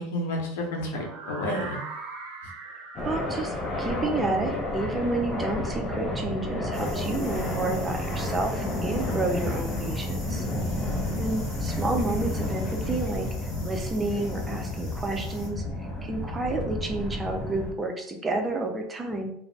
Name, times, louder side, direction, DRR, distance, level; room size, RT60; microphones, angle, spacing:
voice 1, 0.0-1.8 10.6-11.2, left 1 dB, 75° left, 0 dB, 0.8 m, -31 dB
sound 1, 1.0-6.9, right 3 dB, 60° right, 0.7 m, -42 dB
voice 2, 2.7-10.5 11.2-13.3 13.6-19.3, right 2 dB, 20° right, 3 dB, 0.5 m, -30 dB
sound 2, 3.0-17.7, left 1 dB, 35° left, 0.6 m, -31 dB
sound 3, 6.7-15.5, left 1 dB, 15° left, 1.3 m, -46 dB
2.5 x 2.0 x 3.2 m, 0.73 s
supercardioid pair, 110°, 0 cm